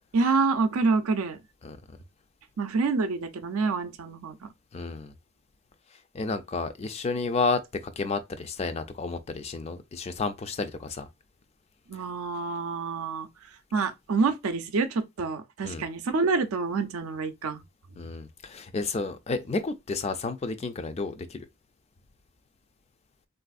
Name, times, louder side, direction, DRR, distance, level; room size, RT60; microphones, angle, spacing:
voice 1, 0.1-1.4 2.6-4.5 11.9-13.3 13.7-17.6, right 4 dB, 80° right, 0.5 m, -27 dB
voice 2, 4.7-5.1 6.1-11.1 15.6-15.9 18.0-21.5, left 3 dB, 30° left, 0.3 m, -31 dB
3.4 x 2.5 x 2.3 m
head